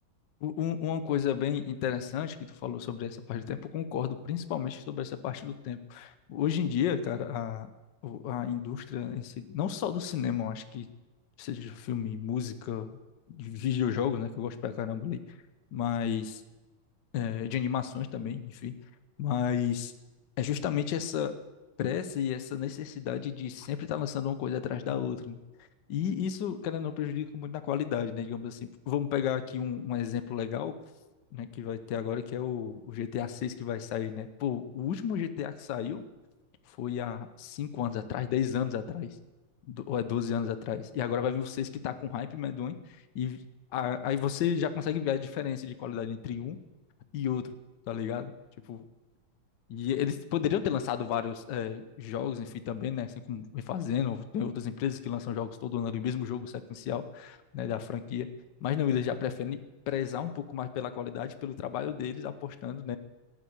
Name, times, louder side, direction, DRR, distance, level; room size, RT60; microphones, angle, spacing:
voice 1, 0.4-7.7 8.0-10.9 11.4-13.0 13.3-15.2 15.7-16.4 17.1-18.7 19.2-19.9 20.4-21.4 21.8-25.4 25.9-30.7 31.3-36.0 36.7-39.2 39.7-42.7 43.1-43.4 43.7-46.6 47.1-47.5 47.9-48.3 48.7-48.8 49.7-58.3 58.6-59.6 59.9-63.0, left 9 dB, 65° left, 10 dB, 1.4 m, -32 dB
18.0 x 9.3 x 8.1 m, 1.1 s
omnidirectional pair, 2.3 m